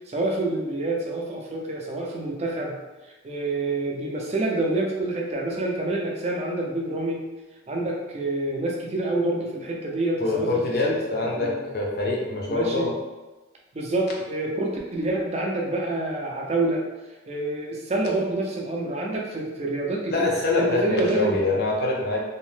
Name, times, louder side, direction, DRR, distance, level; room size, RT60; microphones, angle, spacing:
voice 1, 0.1-2.8 3.0-7.2 7.7-11.7 12.5-13.0 13.7-16.8 17.3-21.6, right 2 dB, 30° right, -1 dB, 0.4 m, -27 dB
voice 2, 10.2-12.9 20.1-22.3, left 2 dB, 50° left, -1 dB, 0.5 m, -25 dB
2.7 x 2.0 x 3.2 m, 1.1 s
head